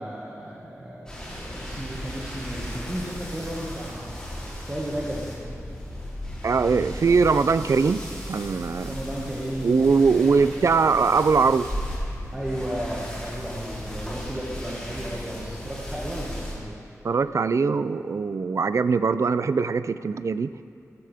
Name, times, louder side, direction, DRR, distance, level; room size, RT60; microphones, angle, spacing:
voice 1, 0.0-4.1 4.6-5.3 6.5-7.1 8.8-10.5 12.3-16.8, right 1 dB, 20° right, -6 dB, 1.8 m, -34 dB
sound 1, 1.1-16.5, equal, 15° left, 3.5 m, -36 dB
voice 2, 6.4-8.0 8.3-8.9 9.6-11.7 17.0-20.5, right 5 dB, 60° right, 14 dB, 0.4 m, -21 dB
15.0 x 14.5 x 3.6 m, 2.6 s
wide cardioid pair, 105°, 6 cm